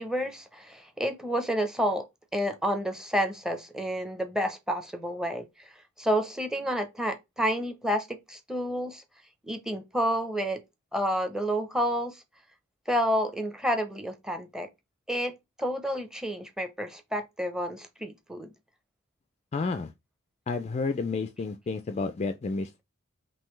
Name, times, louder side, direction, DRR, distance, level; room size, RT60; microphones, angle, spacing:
voice 1, 0.0-2.0 2.3-5.5 6.0-9.0 9.4-10.6 10.9-12.2 12.9-14.7 15.1-18.5, equal, 5° right, 0.7 m, -30 dB
voice 2, 19.5-19.9 20.5-22.8, left 4 dB, 30° left, 0.3 m, -31 dB
5.4 x 2.7 x 3.1 m
head